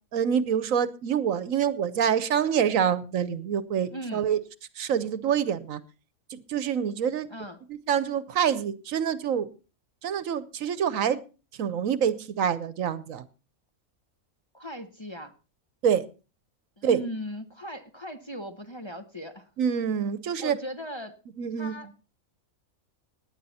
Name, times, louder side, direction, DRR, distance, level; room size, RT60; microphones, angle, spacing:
voice 1, 0.1-4.4 4.8-5.8 6.3-7.3 7.7-9.5 10.0-11.2 11.6-13.2 15.8-16.0 16.8-17.0 19.6-20.5 21.4-21.8, right 8 dB, 70° right, 16 dB, 1.2 m, -26 dB
voice 2, 3.9-4.3 7.3-7.6 14.5-15.3 16.8-19.5 20.4-21.2 21.6-21.9, equal, 20° left, 5 dB, 0.9 m, -38 dB
17.5 x 10.0 x 4.2 m, 0.33 s
omnidirectional pair, 1.5 m